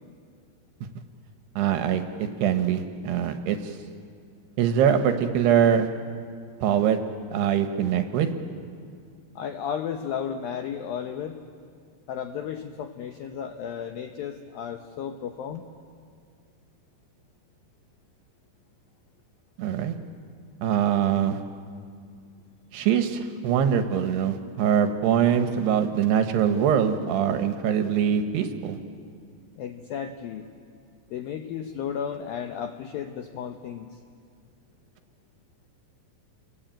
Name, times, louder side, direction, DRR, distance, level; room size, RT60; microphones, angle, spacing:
voice 1, 1.6-3.8 4.6-5.9 6.6-7.0 7.3-8.3 19.6-19.9 20.6-21.4 22.7-28.8, right 8 dB, 70° right, 8 dB, 2.8 m, -23 dB
voice 2, 9.4-11.4 12.1-15.6 29.6-30.5 31.1-34.0, left 8 dB, 80° left, 6 dB, 2.1 m, -34 dB
29.5 x 22.0 x 9.0 m, 2.2 s
omnidirectional pair, 5.5 m